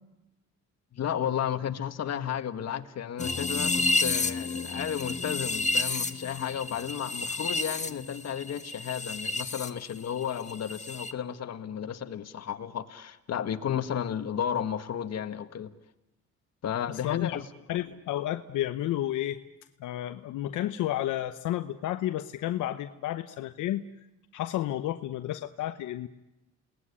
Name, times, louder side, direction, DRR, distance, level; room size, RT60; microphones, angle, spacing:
voice 1, 0.9-15.7 16.6-17.5, left 9 dB, 60° left, 9 dB, 1.7 m, -33 dB
sound 1, 3.2-9.7 10.0-11.1, left 3 dB, 25° left, 1.3 m, -30 dB
voice 2, 17.0-17.4 17.7-19.4 19.8-23.8 24.3-26.1, left 13 dB, 90° left, 9 dB, 0.9 m, -31 dB
28.5 x 19.0 x 9.9 m, 0.97 s
cardioid pair, 90°, 30 cm